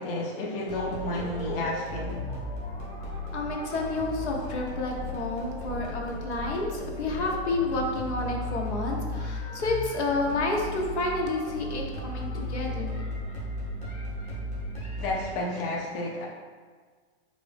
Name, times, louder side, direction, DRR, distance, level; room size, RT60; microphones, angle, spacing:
voice 1, 0.0-2.2 15.0-16.3, left 2 dB, 55° left, -2 dB, 0.6 m, -31 dB
sound 1, 0.7-15.6, left 1 dB, 15° left, 0.8 m, -35 dB
voice 2, 3.3-13.0, left 2 dB, 90° left, 0 dB, 1.0 m, -30 dB
4.5 x 2.5 x 3.5 m, 1.5 s
hypercardioid pair, 170°, 33 cm